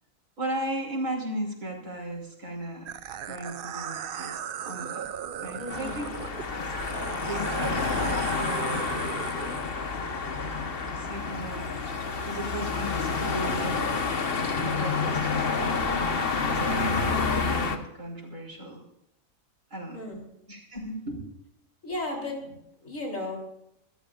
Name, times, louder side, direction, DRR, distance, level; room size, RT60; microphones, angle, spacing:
voice 1, 0.4-2.9 3.2-5.1 5.4-6.1 6.5-7.0 7.3-9.1 10.8-11.8 12.2-13.9 14.6-15.9 16.4-18.8 19.7-20.0 20.5-21.3, right 1 dB, 75° right, -1 dB, 4.5 m, -36 dB
sound 1, 2.9-9.7, right 9 dB, 55° right, 0.6 m, -37 dB
voice 2, 5.6-6.1 19.9-20.2 21.8-23.4, left 1 dB, 70° left, 0 dB, 3.9 m, -35 dB
sound 2, 5.7-17.8, left 4 dB, 45° left, 1.4 m, -29 dB
24.5 x 14.0 x 2.5 m, 0.79 s
omnidirectional pair, 1.4 m